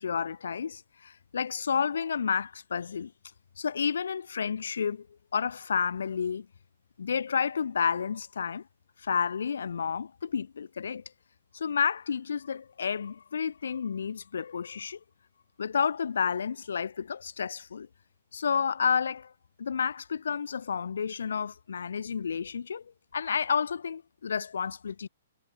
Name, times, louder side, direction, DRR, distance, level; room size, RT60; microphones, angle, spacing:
voice 1, 0.0-3.1 3.6-5.1 5.3-6.5 7.0-8.6 9.0-11.0 11.5-15.0 15.6-17.9 18.3-19.3 19.6-25.1, left 6 dB, 70° left, 1.2 m, -30 dB
figure-of-eight pair, 120°, 0 cm